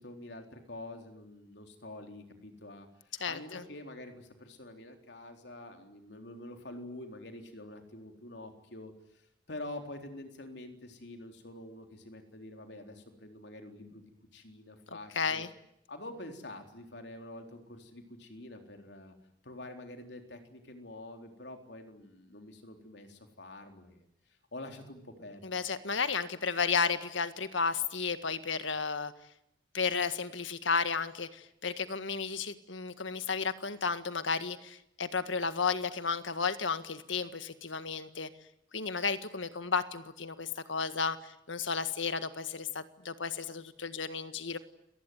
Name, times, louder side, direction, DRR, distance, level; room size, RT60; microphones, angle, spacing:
voice 1, 0.0-15.4 15.9-19.1 19.4-25.6, left 1 dB, 60° left, 5 dB, 3.9 m, -47 dB
voice 2, 3.2-3.6 15.1-15.5 25.4-29.1 29.7-38.3 38.7-44.6, left 5 dB, 80° left, 11 dB, 1.8 m, -33 dB
30.0 x 19.5 x 9.5 m, 0.80 s
head